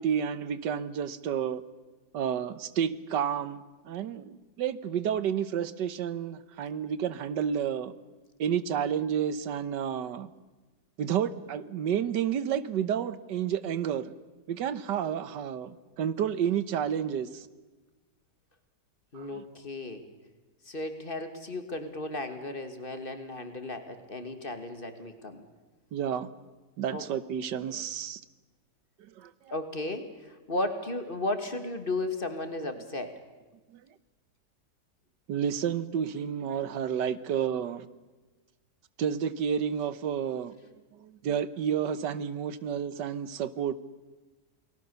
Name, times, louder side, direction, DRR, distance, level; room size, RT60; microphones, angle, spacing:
voice 1, 0.0-1.6 2.1-7.9 8.4-10.3 11.0-14.1 14.5-17.5 19.2-19.3 25.9-26.3 26.8-28.2 29.2-29.3 33.7-33.8 35.3-37.9 39.0-40.5 41.0-43.7, right 8 dB, 90° right, 16 dB, 1.6 m, -30 dB
voice 2, 19.1-20.0 20.7-25.4 26.9-27.1 29.5-33.2, left 2 dB, 30° left, 8 dB, 2.0 m, -35 dB
29.0 x 19.5 x 6.9 m, 1.2 s
omnidirectional pair, 1.8 m